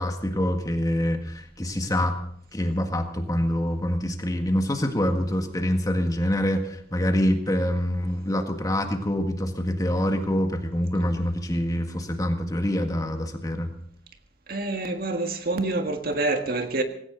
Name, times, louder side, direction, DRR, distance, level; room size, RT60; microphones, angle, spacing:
voice 1, 0.0-2.2 2.5-13.7, equal, 20° left, 5 dB, 1.8 m, -25 dB
voice 2, 14.5-16.8, right 2 dB, 55° right, 6 dB, 1.7 m, -27 dB
19.0 x 17.0 x 4.0 m, 0.65 s
head